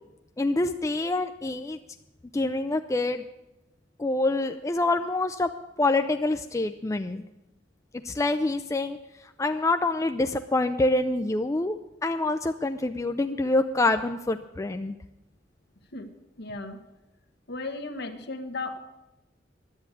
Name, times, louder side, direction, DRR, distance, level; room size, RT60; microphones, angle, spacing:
voice 1, 0.4-1.8 2.3-3.2 4.0-5.5 5.8-7.2 8.0-9.0 9.4-15.0, left 2 dB, 15° left, 8 dB, 0.4 m, -26 dB
voice 2, 16.4-16.8 17.5-18.8, left 3 dB, 60° left, 6 dB, 1.2 m, -35 dB
10.5 x 8.5 x 8.9 m, 0.97 s
head